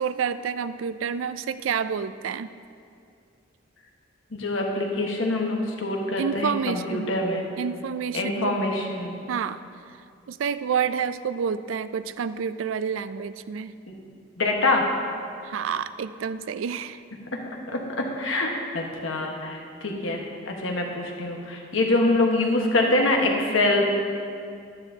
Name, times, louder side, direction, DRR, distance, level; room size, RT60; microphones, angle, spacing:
voice 1, 0.0-2.5 6.2-7.1 7.6-8.6 9.3-9.6 10.3-13.7 15.4-17.0, right 7 dB, 80° right, 14 dB, 0.3 m, -29 dB
voice 2, 4.3-7.4 8.1-9.2 13.9-14.0 14.4-14.8 17.7-18.5 18.7-20.2 20.5-23.8, left 2 dB, 80° left, 1 dB, 1.3 m, -25 dB
12.0 x 10.5 x 2.8 m, 2.4 s
head